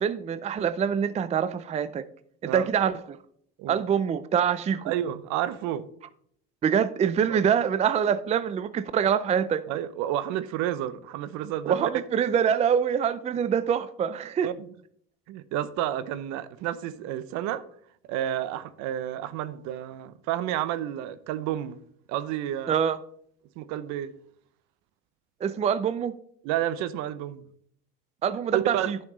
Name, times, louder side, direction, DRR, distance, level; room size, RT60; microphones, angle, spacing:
voice 1, 0.0-2.0 2.4-3.2 3.7-4.9 6.6-9.6 11.7-14.5 22.7-23.0 25.4-26.1 28.2-29.0, right 8 dB, 20° right, 0.4 m, -25 dB
voice 2, 4.8-5.9 7.3-7.4 9.7-11.9 14.4-14.7 15.3-17.6 18.1-21.8 22.1-22.8 23.6-24.1 26.4-27.5 28.5-28.9, right 12 dB, 65° right, 0.8 m, -30 dB
11.0 x 5.8 x 3.9 m
supercardioid pair, 105°, 31 cm